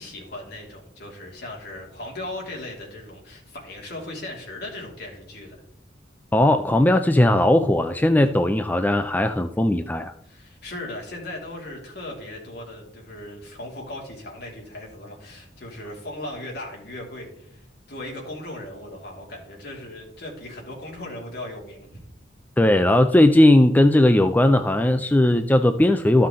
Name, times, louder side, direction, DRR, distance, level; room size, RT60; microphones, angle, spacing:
voice 1, 0.0-5.6 10.2-22.0, left 1 dB, 60° left, -1 dB, 2.6 m, -37 dB
voice 2, 6.3-10.1 22.6-26.3, left 1 dB, 10° left, 7 dB, 0.4 m, -18 dB
13.5 x 5.7 x 3.7 m, 0.75 s
head